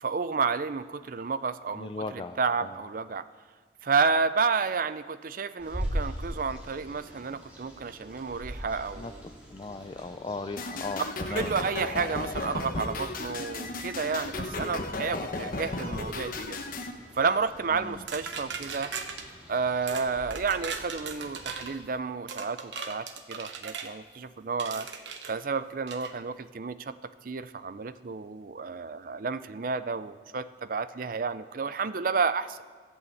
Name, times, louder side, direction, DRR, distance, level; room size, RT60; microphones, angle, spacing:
voice 1, 0.0-3.2 3.8-9.2 11.3-16.6 17.2-18.9 19.5-24.9 25.3-26.9 27.2-32.6, right 5 dB, 50° right, 13 dB, 0.5 m, -31 dB
voice 2, 1.7-2.8 9.0-9.1 9.5-11.5 17.7-18.0, left 3 dB, 30° left, 8 dB, 0.4 m, -37 dB
sound 1, 5.6-21.8, equal, 5° right, 3.1 m, -43 dB
sound 2, 10.6-16.9, left 2 dB, 50° left, 1.0 m, -35 dB
sound 3, 18.1-19.3 19.9-20.1 20.3-21.7 22.3-23.9 24.6-25.3 25.9-26.1, right 5 dB, 85° right, 1.1 m, -38 dB
14.0 x 8.5 x 7.8 m, 1.5 s
head